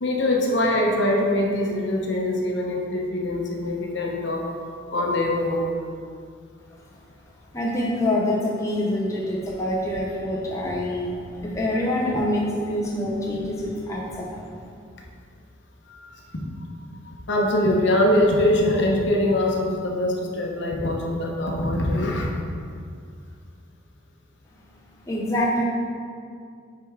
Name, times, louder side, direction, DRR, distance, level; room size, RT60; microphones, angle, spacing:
voice 1, 0.0-4.5 4.9-5.7 15.9-16.5 17.0-22.3, left 1 dB, 60° left, -1 dB, 0.8 m, -23 dB
voice 2, 7.5-14.3 25.1-25.6, left 1 dB, 15° left, -5 dB, 0.6 m, -25 dB
5.1 x 4.7 x 4.6 m, 2.3 s
head